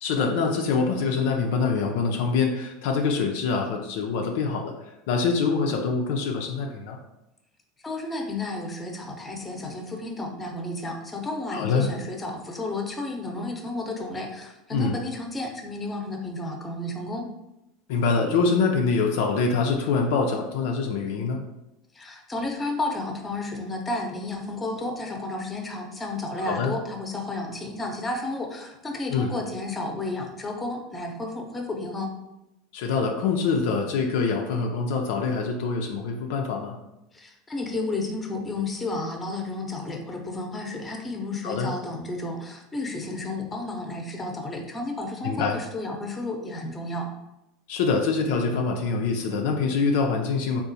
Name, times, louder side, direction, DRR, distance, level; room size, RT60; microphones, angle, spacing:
voice 1, 0.0-4.7 5.1-7.0 11.5-11.9 14.7-15.0 17.9-21.4 26.4-26.7 29.1-29.3 32.7-36.8 41.4-41.7 45.2-45.6 47.7-50.6, left 4 dB, 70° left, 2 dB, 0.4 m, -25 dB
voice 2, 7.8-17.3 21.9-32.1 37.1-47.1, left 2 dB, 15° left, 2 dB, 0.7 m, -32 dB
3.6 x 2.4 x 2.6 m, 0.89 s
hypercardioid pair, 85°, 0 cm